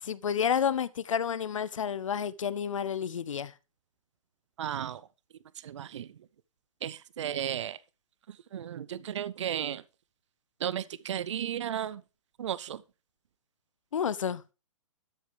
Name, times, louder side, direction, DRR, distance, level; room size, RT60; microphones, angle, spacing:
voice 1, 0.0-3.5 13.9-14.4, left 8 dB, 65° left, 0.8 m, -30 dB
voice 2, 4.6-5.0 5.6-6.1 6.8-7.8 8.5-9.8 10.6-12.0 12.4-12.8, right 10 dB, 60° right, 0.7 m, -34 dB
13.0 x 8.2 x 3.4 m
figure-of-eight pair, 120°, 17 cm